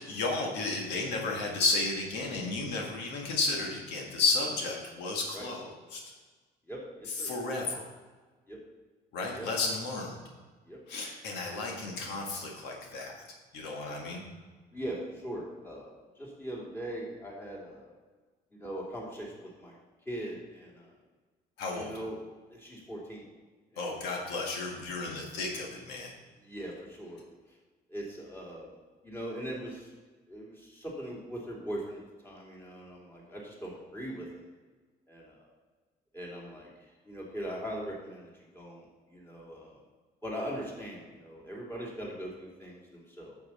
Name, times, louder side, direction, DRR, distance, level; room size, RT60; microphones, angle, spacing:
voice 1, 0.1-6.0 7.1-7.8 9.1-10.2 10.9-13.1 13.5-14.2 21.6-21.9 23.8-26.1, left 3 dB, 90° left, 0 dB, 1.6 m, -32 dB
voice 2, 6.7-7.3 8.5-8.6 9.3-9.5 10.7-10.8 11.5-11.6 14.7-15.9 16.2-17.9 18.5-19.8 20.1-20.9 21.7-22.2 22.5-23.2 23.7-23.8 26.4-27.2 27.9-28.7 29.0-29.9 30.3-34.3 35.1-35.5 36.1-36.7 37.1-39.8 40.2-43.4, equal, 15° left, -4 dB, 2.8 m, -40 dB
8.8 x 7.2 x 4.2 m, 1.3 s
cardioid pair, 110°, 17 cm